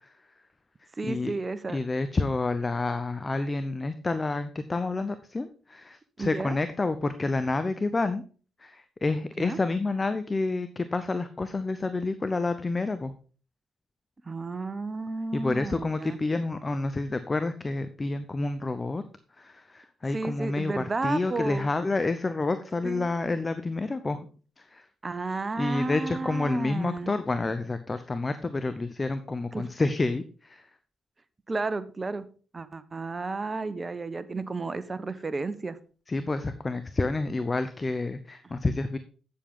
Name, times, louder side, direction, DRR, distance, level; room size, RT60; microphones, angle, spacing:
voice 1, 1.0-1.8 6.2-6.6 9.4-9.6 14.2-16.2 20.1-21.7 22.8-23.1 25.0-27.1 29.5-29.7 31.5-32.2 32.5-35.8 38.4-38.5, right 3 dB, 35° right, 14 dB, 0.9 m, -32 dB
voice 2, 1.7-8.2 8.6-13.1 15.3-19.0 19.4-24.2 24.6-24.8 25.6-30.6 36.1-39.0, left 3 dB, 35° left, 11 dB, 0.8 m, -29 dB
8.6 x 7.4 x 3.7 m, 0.38 s
hypercardioid pair, 40°, 0 cm